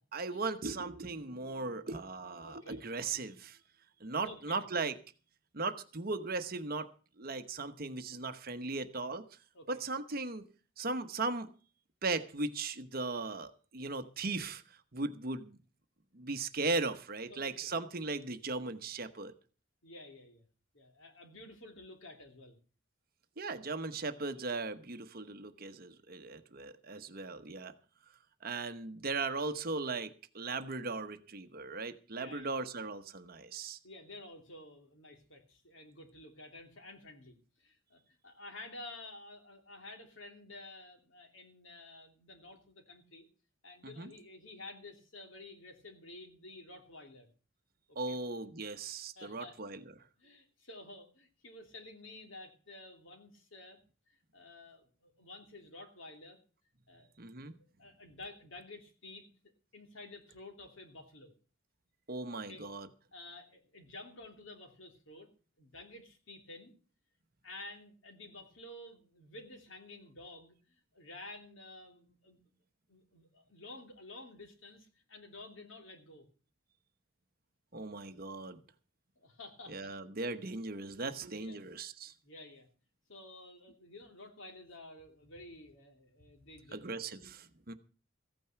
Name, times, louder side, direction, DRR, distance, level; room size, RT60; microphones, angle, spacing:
voice 1, 0.1-3.6 4.0-4.9 5.5-6.9 7.2-9.2 9.7-10.4 10.8-11.5 12.0-14.6 14.9-15.6 16.1-19.3 23.4-27.7 28.4-33.8 43.8-44.1 48.0-49.9 57.2-57.6 62.1-62.9 77.7-78.6 79.7-82.1 86.7-87.7, right 3 dB, 45° right, 10 dB, 1.0 m, -38 dB
voice 2, 2.4-2.8 4.1-4.6 9.5-9.7 17.3-17.7 19.8-20.5 20.7-22.6 32.1-32.7 33.8-43.2 43.6-47.3 48.1-48.2 49.2-49.8 50.2-53.8 54.3-56.4 56.9-57.1 57.5-59.3 59.7-61.3 62.5-62.6 63.1-65.3 65.6-66.7 67.4-70.6 70.9-72.4 72.9-76.3 79.2-79.9 81.4-81.6 82.2-82.7 83.1-86.8, left 2 dB, 70° left, 4 dB, 2.9 m, -51 dB
15.0 x 9.1 x 5.8 m, 0.38 s
head